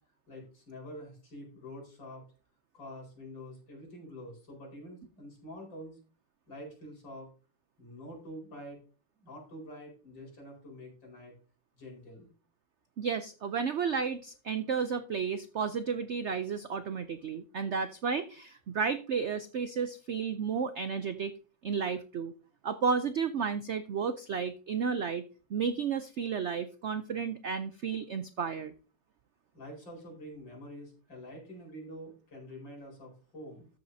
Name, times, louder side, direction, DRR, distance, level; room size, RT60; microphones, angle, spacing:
voice 1, 0.3-2.3 2.7-6.0 6.5-7.3 7.8-8.8 9.1-11.3 11.7-12.3 29.5-33.7, equal, 75° left, 0 dB, 5.3 m, -46 dB
voice 2, 13.0-21.3 21.6-22.3 22.6-25.2 25.5-28.7, right 6 dB, 85° right, 11 dB, 0.6 m, -32 dB
13.5 x 8.0 x 2.7 m, 0.36 s
omnidirectional pair, 2.0 m